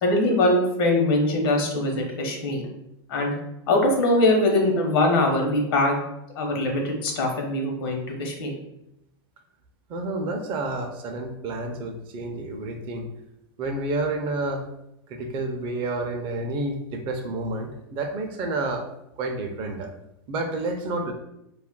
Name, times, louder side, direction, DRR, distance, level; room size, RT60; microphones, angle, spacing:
voice 1, 0.0-2.6 3.1-3.3 3.7-6.0 6.3-8.5, left 2 dB, 70° left, 1 dB, 0.9 m, -22 dB
voice 2, 9.9-13.1 13.6-14.6 15.1-18.8 19.2-19.9 20.3-21.1, right 2 dB, 40° right, 4 dB, 0.5 m, -29 dB
2.4 x 2.1 x 3.6 m, 0.84 s
hypercardioid pair, 125°, 13 cm